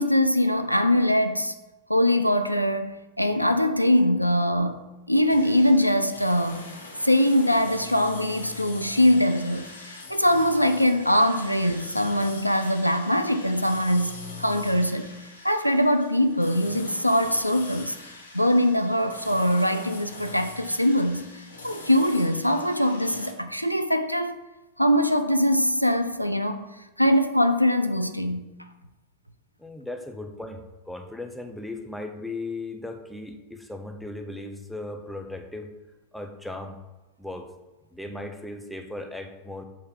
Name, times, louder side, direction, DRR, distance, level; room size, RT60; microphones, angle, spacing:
voice 1, 0.0-1.5 1.9-6.6 7.0-9.7 10.1-15.1 15.4-18.0 18.3-21.3 21.6-24.4 24.8-26.7 27.0-28.5, equal, 90° right, 0.3 m, -22 dB
sound 1, 5.3-23.3, left 3 dB, 75° left, 0.8 m, -43 dB
voice 2, 29.6-35.7 36.1-36.8 37.2-37.5 37.9-39.6, left 2 dB, ahead, 0.6 m, -37 dB
6.7 x 2.8 x 5.1 m
figure-of-eight pair, 90°, 0 cm